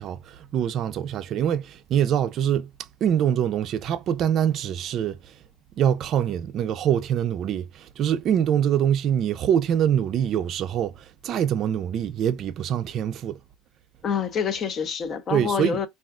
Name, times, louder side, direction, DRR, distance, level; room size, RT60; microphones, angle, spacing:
voice 1, 0.0-2.7 3.0-5.4 5.8-13.4 15.3-15.8, right 9 dB, 50° right, 0.3 m, -24 dB
voice 2, 14.0-15.9, left 7 dB, 40° left, 0.5 m, -27 dB
3.5 x 2.4 x 2.3 m
supercardioid pair, 120°, 0 cm